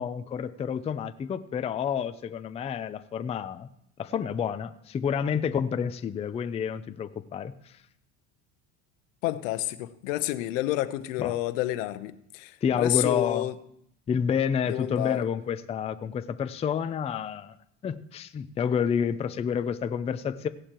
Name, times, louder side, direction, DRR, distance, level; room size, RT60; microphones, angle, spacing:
voice 1, 0.0-3.7 4.0-7.7 11.2-11.4 12.6-13.5 14.1-17.6 17.8-20.5, left 7 dB, 15° left, 10 dB, 0.4 m, -29 dB
voice 2, 9.2-13.5 14.7-15.3, left 16 dB, 80° left, 12 dB, 0.9 m, -29 dB
17.0 x 11.5 x 3.0 m, 0.73 s
supercardioid pair, 125°, 38 cm